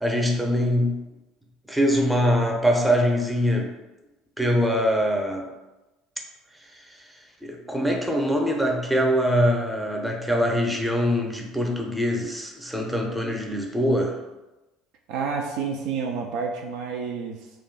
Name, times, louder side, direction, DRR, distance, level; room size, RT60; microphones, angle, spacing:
voice 1, 0.0-1.0 1.7-3.7 4.4-5.5 7.4-14.2, equal, 5° right, 0 dB, 0.6 m, -23 dB
voice 2, 15.1-17.5, right 5 dB, 65° right, 1 dB, 0.3 m, -29 dB
2.6 x 2.2 x 3.7 m, 1.1 s
hypercardioid pair, 60°, 0 cm